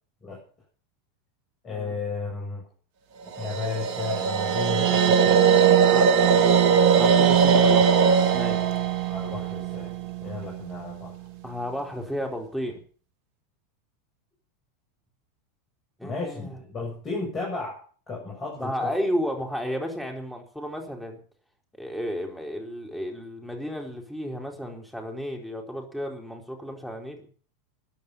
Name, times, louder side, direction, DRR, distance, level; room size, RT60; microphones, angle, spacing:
voice 1, 1.6-2.6 3.4-5.5 9.1-9.9 10.2-11.2 16.0-18.9, left 4 dB, 25° left, -3 dB, 7.9 m, -34 dB
sound 1, 3.3-10.5, right 7 dB, 55° right, 1.7 m, -20 dB
voice 2, 5.9-6.4 7.0-8.0 8.3-8.6 11.4-12.8 16.0-16.5 18.6-21.2 21.8-27.2, equal, 5° left, 2 dB, 4.5 m, -32 dB
14.5 x 10.5 x 7.2 m, 0.43 s
figure-of-eight pair, 85°, 0 cm